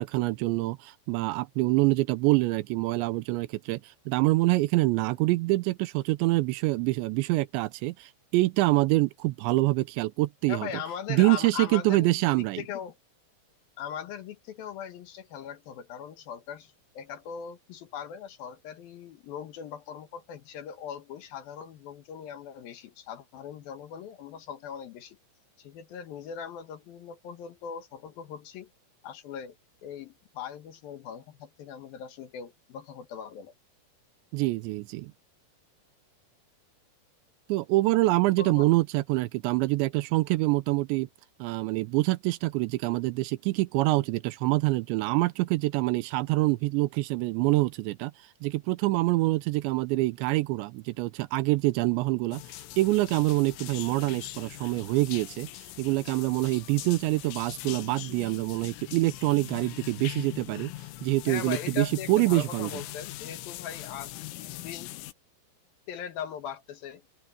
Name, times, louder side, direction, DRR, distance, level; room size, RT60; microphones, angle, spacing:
voice 1, 0.0-10.7 11.1-12.6 34.3-35.1 37.5-41.1 41.4-48.1 48.4-52.4 52.8-55.5 55.8-60.7 61.0-62.7, right 20 dB, 85° right, 2.7 m, -26 dB
voice 2, 10.5-13.0 13.8-25.2 25.6-28.7 29.0-29.6 29.8-33.5 38.4-38.7 61.3-64.9 65.9-67.0, left 8 dB, 65° left, 2.6 m, -40 dB
sound 1, 52.3-65.1, left 16 dB, 80° left, 3.5 m, -41 dB
open air
omnidirectional pair, 5.8 m